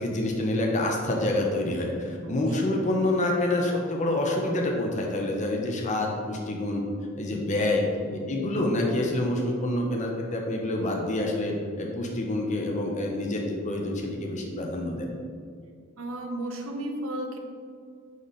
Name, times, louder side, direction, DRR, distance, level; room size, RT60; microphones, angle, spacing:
voice 1, 0.0-6.9 7.2-15.1, left 1 dB, 35° left, 0 dB, 0.8 m, -27 dB
voice 2, 2.2-2.7 8.0-8.3 16.0-17.4, right 1 dB, 70° right, 3 dB, 0.8 m, -35 dB
9.2 x 3.4 x 4.1 m, 2.1 s
head